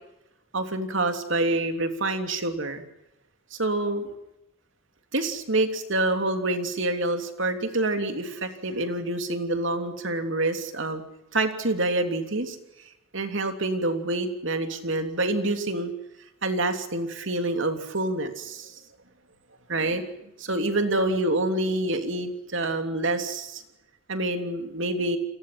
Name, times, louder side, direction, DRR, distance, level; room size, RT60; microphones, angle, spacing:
voice 1, 0.5-2.8 3.5-4.1 5.1-11.0 11.3-12.6 13.1-15.9 16.4-18.7 19.7-20.0 20.4-23.6 24.1-25.2, right 2 dB, 60° right, 6 dB, 3.2 m, -27 dB
30.0 x 23.0 x 6.0 m, 0.88 s
head